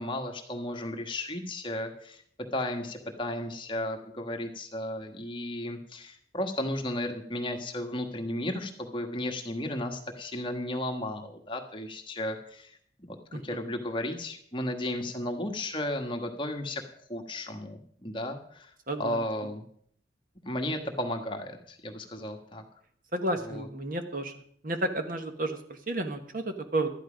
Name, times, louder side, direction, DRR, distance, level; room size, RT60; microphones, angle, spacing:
voice 1, 0.0-2.2 2.5-12.8 13.1-13.2 13.4-16.8 17.1-18.7 19.0-19.6 20.4-22.6 23.5-23.7, left 1 dB, 25° left, 4 dB, 1.4 m, -34 dB
voice 2, 18.9-19.2 23.1-24.3 24.6-26.9, right 1 dB, 45° right, 6 dB, 1.3 m, -32 dB
12.5 x 10.5 x 5.1 m, 0.64 s
head